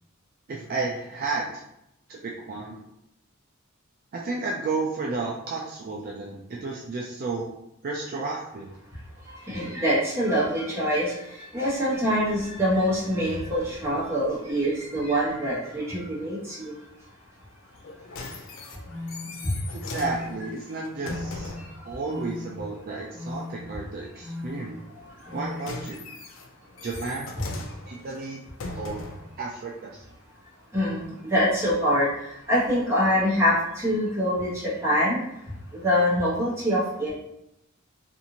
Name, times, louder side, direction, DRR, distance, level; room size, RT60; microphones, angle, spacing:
voice 1, 0.5-1.6 2.1-2.8 4.1-7.5 7.8-8.7 9.7-9.9 19.7-21.5 21.8-24.8 25.3-26.0 26.8-27.3 27.9-28.4 28.7-29.1 29.4-30.0, right 3 dB, 45° right, -2 dB, 0.4 m, -32 dB
voice 2, 9.5-11.1 11.5-16.7 30.7-32.1 32.5-35.2 35.7-37.1, equal, 15° right, -7 dB, 1.0 m, -24 dB
sound 1, 17.7-21.8 25.2-29.4 30.1-30.2, left 2 dB, 70° left, 0.4 m, -39 dB
sound 2, 18.2-18.3 18.9-19.3 19.9-20.3 21.0-21.4 22.1-22.5 23.1-23.5 24.2-24.6 25.3-25.7, left 2 dB, 30° left, 1.1 m, -36 dB
2.6 x 2.5 x 2.9 m, 0.82 s
head